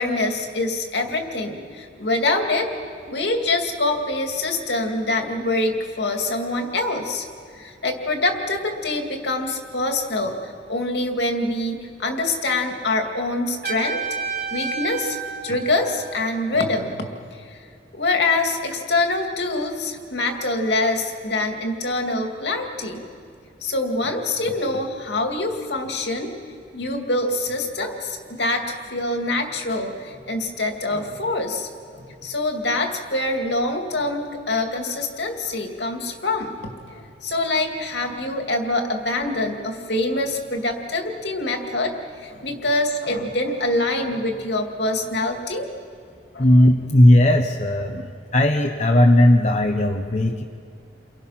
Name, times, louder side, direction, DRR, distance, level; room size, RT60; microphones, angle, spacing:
voice 1, 0.0-2.7 3.1-7.3 7.5-14.0 14.5-15.2 15.4-17.0 17.5-17.6 17.9-23.0 23.6-26.3 26.7-31.7 31.9-45.7 46.3-46.4, left 2 dB, 65° left, 3 dB, 2.5 m, -25 dB
Trumpet, 13.6-16.5, right 5 dB, 60° right, 2.4 m, -30 dB
voice 2, 46.4-50.4, left 1 dB, 40° left, 3 dB, 1.0 m, -16 dB
29.5 x 23.5 x 5.9 m, 2.2 s
head